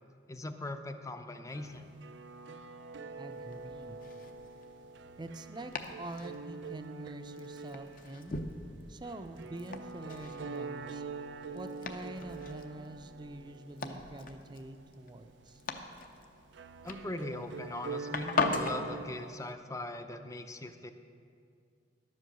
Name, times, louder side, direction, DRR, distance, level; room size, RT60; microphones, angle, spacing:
voice 1, 0.3-1.9 16.8-20.9, left 1 dB, 20° left, 8 dB, 0.5 m, -40 dB
sound 1, 1.5-19.5, right 4 dB, 80° right, 0.4 m, -45 dB
voice 2, 3.2-4.0 5.2-5.7 6.0-8.4 8.9-11.0 11.5-15.6, right 1 dB, 25° right, 8 dB, 0.5 m, -45 dB
Domestic sounds home sounds, 3.3-18.9, left 3 dB, 50° left, 0.7 m, -41 dB
11.5 x 7.7 x 6.8 m, 2.3 s
head